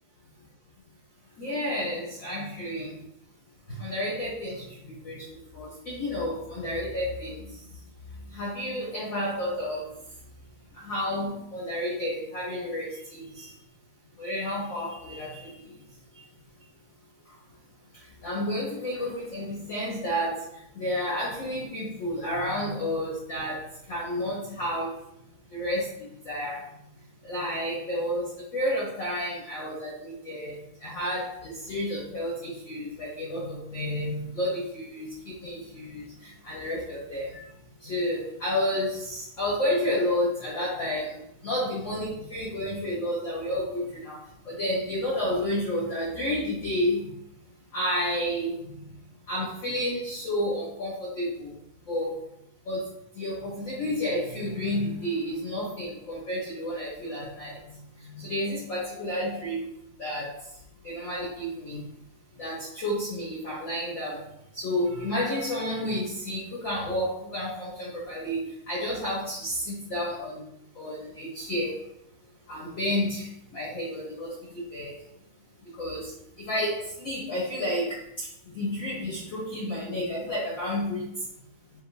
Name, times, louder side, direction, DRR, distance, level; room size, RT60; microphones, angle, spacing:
voice 1, 1.4-3.0 3.7-5.2 5.5-7.5 8.3-9.9 10.8-13.5 14.2-15.5 18.2-20.4 20.7-23.6 23.9-24.9 25.5-25.9 26.2-26.6 27.2-30.6 30.8-37.4 37.8-47.1 47.7-48.7 49.3-51.5 51.9-52.1 52.7-52.8 53.1-57.6 58.0-59.6 60.0-60.3 60.8-61.8 62.4-64.2 64.5-70.4 70.7-71.7 72.5-74.9 75.8-76.1 76.4-78.3 78.5-81.0, left 1 dB, 85° left, -7 dB, 1.0 m, -31 dB
7.2 x 2.9 x 2.4 m, 0.76 s
omnidirectional pair, 4.2 m